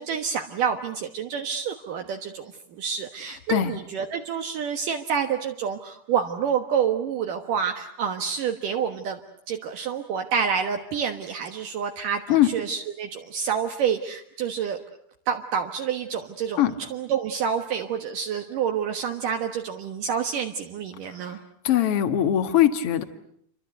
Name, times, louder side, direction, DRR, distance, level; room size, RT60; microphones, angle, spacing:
voice 1, 0.0-9.2 9.5-14.8 15.3-21.4, right 7 dB, 65° right, 4 dB, 2.9 m, -28 dB
voice 2, 21.6-23.0, left 12 dB, 50° left, 8 dB, 2.2 m, -21 dB
29.5 x 25.0 x 8.0 m, 0.69 s
omnidirectional pair, 4.2 m